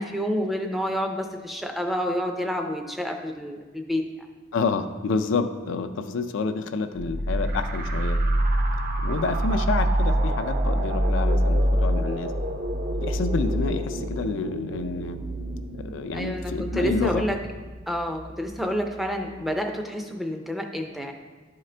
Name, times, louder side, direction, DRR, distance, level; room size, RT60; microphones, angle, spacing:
voice 1, 0.0-4.0 16.1-17.4 17.9-21.1, equal, ahead, 3 dB, 0.4 m, -28 dB
voice 2, 4.5-8.2 9.0-12.3 13.0-15.2 15.7-17.2, left 4 dB, 65° left, 8 dB, 0.4 m, -28 dB
sound 1, 7.0-18.3, right 1 dB, 45° right, 0.6 m, -26 dB
11.0 x 3.8 x 3.3 m, 1.3 s
head